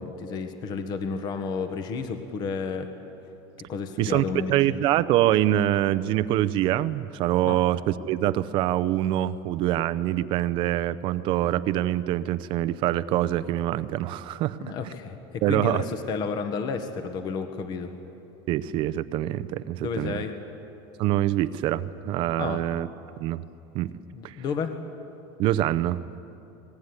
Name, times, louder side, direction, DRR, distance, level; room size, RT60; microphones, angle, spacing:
voice 1, 0.0-2.9 3.7-4.8 7.4-7.6 14.6-17.9 19.8-20.3 22.4-22.6 24.1-24.8, left 5 dB, 35° left, 7 dB, 1.6 m, -31 dB
voice 2, 4.0-14.6 15.4-15.8 18.5-20.2 21.0-22.9 23.2-23.4 23.7-23.9 24.2-24.4 25.4-26.0, right 13 dB, 40° right, 14 dB, 0.7 m, -25 dB
26.0 x 20.0 x 9.7 m, 2.8 s
cardioid pair, 165°, 13 cm